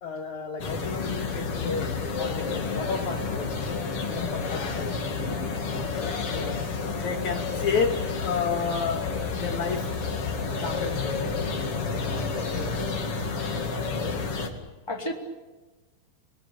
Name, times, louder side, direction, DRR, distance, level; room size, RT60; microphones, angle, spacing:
voice 1, 0.0-3.8 4.1-5.0 7.0-10.0 10.6-11.4, left 5 dB, 60° left, 2.7 m, -31 dB
sound 1, 0.6-14.5, left 4 dB, 45° left, 2.9 m, -30 dB
voice 2, 5.7-6.7 12.5-12.8 14.9-15.1, left 1 dB, 5° left, 3.2 m, -36 dB
27.0 x 19.5 x 8.8 m
omnidirectional pair, 4.1 m